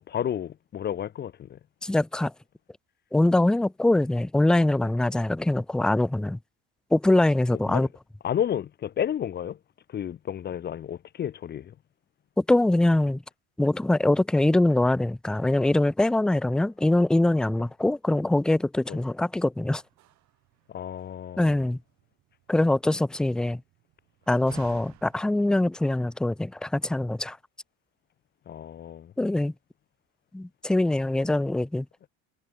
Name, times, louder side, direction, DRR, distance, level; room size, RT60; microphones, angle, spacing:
voice 1, 0.1-1.6 7.7-7.9 8.2-9.6 9.9-11.7 18.9-19.0 20.7-21.5 28.5-29.1, left 9 dB, 30° left, 0.9 m, -31 dB
voice 2, 1.8-2.3 3.1-6.4 6.9-7.9 12.4-13.2 13.6-19.8 21.4-21.8 22.5-23.6 24.3-27.4 29.2-29.5 30.3-31.9, left 1 dB, ahead, 0.4 m, -23 dB
Slam, 19.3-26.6, right 16 dB, 50° right, 3.8 m, -56 dB
cardioid pair, 140°, 35 cm